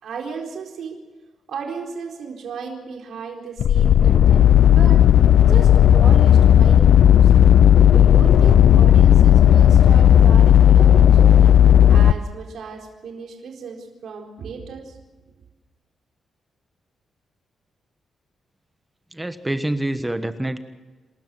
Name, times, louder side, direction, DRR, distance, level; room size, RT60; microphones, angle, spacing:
voice 1, 0.0-1.0 1.5-4.5 4.7-5.0 5.4-7.3 7.9-11.5 11.9-15.0, right 5 dB, 75° right, 1 dB, 4.2 m, -35 dB
sound 1, 3.6-12.1, left 10 dB, 80° left, 0.6 m, -12 dB
voice 2, 19.1-20.6, right 1 dB, 10° right, 9 dB, 1.3 m, -26 dB
28.5 x 13.5 x 7.8 m, 1.3 s
cardioid pair, 105°, 0 cm